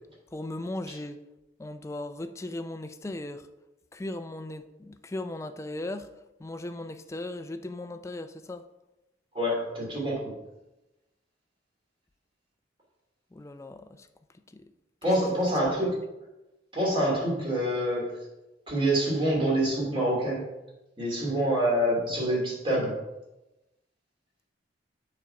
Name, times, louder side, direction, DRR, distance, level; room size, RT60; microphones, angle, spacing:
voice 1, 0.3-1.2 1.6-3.5 3.9-6.1 6.4-8.6 13.3-14.1 14.5-14.7, left 1 dB, 15° left, 0.3 m, -37 dB
voice 2, 9.3-10.3 15.0-15.9 16.7-18.2 18.7-20.4 21.0-23.0, right 1 dB, 30° right, 2.8 m, -26 dB
7.1 x 4.3 x 5.7 m
head